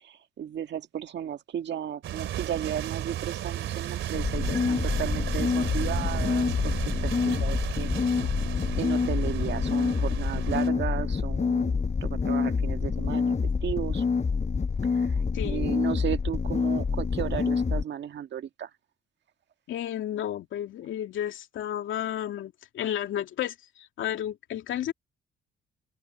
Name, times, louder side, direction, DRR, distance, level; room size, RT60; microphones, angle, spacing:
voice 1, 0.0-6.7 7.0-7.9 8.8-13.4 13.6-14.0 14.9-18.7, right 9 dB, 60° right, 1.8 m, -34 dB
sound 1, 2.0-10.7, right 12 dB, 80° right, 3.0 m, -34 dB
sound 2, 4.1-17.8, left 5 dB, 35° left, 5.9 m, -27 dB
voice 2, 15.3-15.8 19.7-24.9, left 11 dB, 80° left, 2.6 m, -32 dB
cardioid pair, 90°, 20 cm